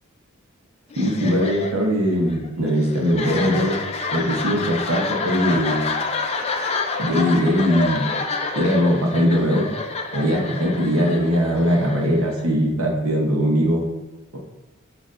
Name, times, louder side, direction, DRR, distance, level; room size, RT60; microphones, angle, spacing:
sound 1, 0.9-12.6, left 3 dB, 30° left, 0.4 m, -28 dB
voice 1, 1.0-3.8 4.1-6.0 7.0-8.0 8.5-9.7 10.1-13.9, equal, 85° right, 0 dB, 0.9 m, -20 dB
6.4 x 2.6 x 2.5 m, 1.2 s
head